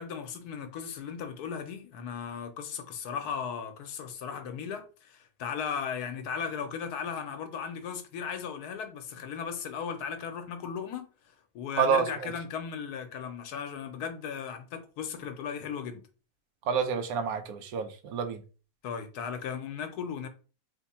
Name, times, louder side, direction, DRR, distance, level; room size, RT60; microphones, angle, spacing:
voice 1, 0.0-11.1 11.5-16.0 18.8-20.3, left 7 dB, 85° left, 1.2 m, -36 dB
voice 2, 11.7-12.3 16.7-18.4, right 6 dB, 75° right, 1.0 m, -28 dB
3.3 x 2.2 x 4.2 m
omnidirectional pair, 1.6 m